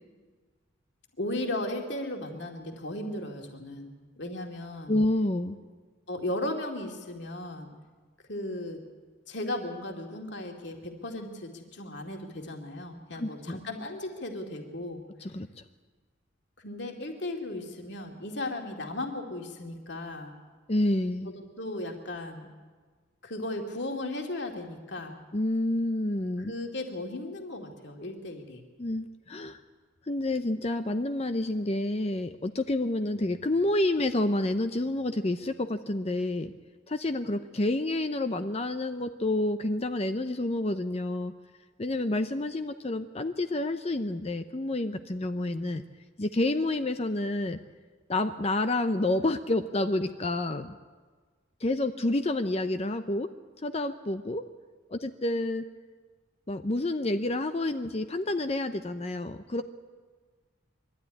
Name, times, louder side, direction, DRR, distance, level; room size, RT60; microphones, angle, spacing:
voice 1, 1.2-3.9 4.2-5.0 6.1-7.7 8.3-8.8 9.3-15.0 16.6-20.4 21.2-22.5 23.2-25.2 26.4-28.6, left 1 dB, 60° left, 3 dB, 2.4 m, -36 dB
voice 2, 4.9-5.6 13.2-13.6 15.2-15.5 20.7-21.3 25.3-26.5 28.8-29.6 30.1-36.5 36.9-41.3 41.8-45.8 46.2-47.6 48.1-50.8 51.6-53.3 53.6-54.4 54.9-55.6 56.5-59.6, left 2 dB, 30° left, 8 dB, 0.6 m, -29 dB
22.5 x 13.0 x 9.8 m, 1.5 s
head